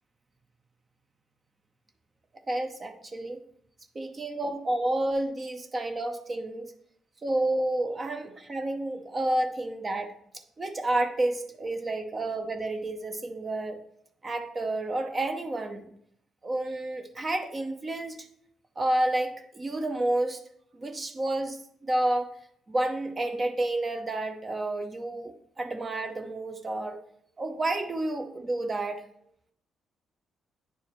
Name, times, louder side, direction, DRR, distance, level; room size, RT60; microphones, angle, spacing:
voice 1, 2.5-3.4 3.9-6.7 7.2-10.1 10.6-13.8 14.2-15.9 16.4-18.3 18.8-20.4 20.7-22.4 22.7-27.0 27.4-29.0, right 1 dB, 30° right, 5 dB, 0.7 m, -30 dB
9.5 x 4.6 x 3.0 m, 0.70 s
cardioid pair, 90°, 0 cm